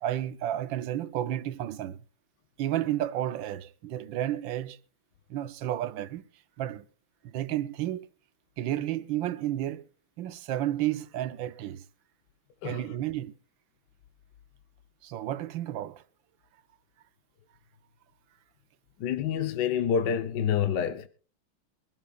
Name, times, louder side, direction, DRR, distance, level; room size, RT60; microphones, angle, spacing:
voice 1, 0.0-2.0 2.6-4.8 5.3-6.2 6.6-6.8 7.2-8.1 8.6-9.9 10.2-11.8 12.6-13.3 15.0-16.0, right 12 dB, 70° right, 1.4 m, -31 dB
voice 2, 19.0-21.1, left 8 dB, 60° left, 1.4 m, -27 dB
24.0 x 12.5 x 2.4 m
omnidirectional pair, 2.3 m